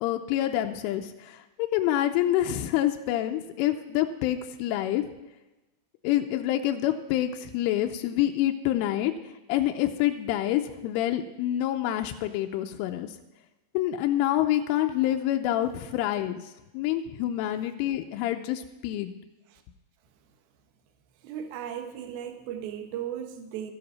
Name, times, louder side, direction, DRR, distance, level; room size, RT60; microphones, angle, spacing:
voice 1, 0.0-5.1 6.0-9.1 9.5-13.2 13.7-19.2, left 13 dB, 90° left, 5 dB, 3.1 m, -27 dB
voice 2, 21.2-23.7, right 9 dB, 70° right, 7 dB, 2.4 m, -36 dB
13.5 x 10.5 x 5.4 m, 1.0 s
omnidirectional pair, 5.6 m